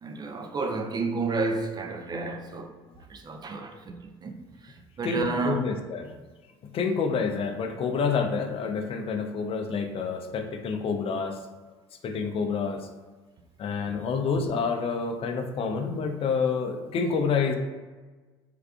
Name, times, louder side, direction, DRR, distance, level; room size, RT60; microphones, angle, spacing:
voice 1, 0.0-2.7 3.1-5.6, right 3 dB, 30° right, 0.5 m, -31 dB
voice 2, 5.0-6.1 6.7-11.3 12.0-12.8 13.6-17.6, left 5 dB, 40° left, 0.5 m, -28 dB
3.5 x 3.3 x 2.3 m
hypercardioid pair, 65°, 14 cm